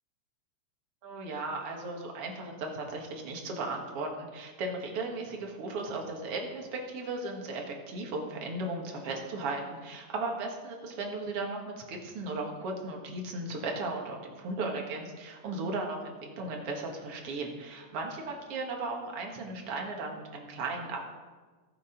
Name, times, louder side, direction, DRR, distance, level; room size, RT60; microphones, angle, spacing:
voice 1, 1.0-21.0, right 2 dB, 55° right, 1 dB, 2.5 m, -36 dB
15.0 x 7.9 x 5.1 m, 1.4 s
omnidirectional pair, 3.4 m